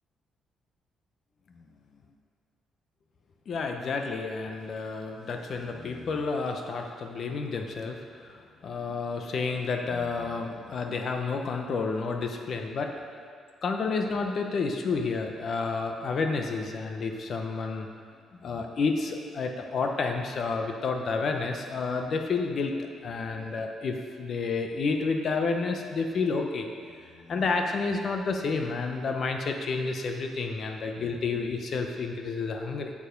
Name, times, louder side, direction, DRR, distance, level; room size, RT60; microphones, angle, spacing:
voice 1, 3.5-12.9 13.6-17.9 18.4-22.7 23.0-26.7 27.0-32.9, left 4 dB, 55° left, 4 dB, 0.8 m, -30 dB
7.2 x 6.9 x 5.2 m, 2.3 s
cardioid pair, 90°, 0 cm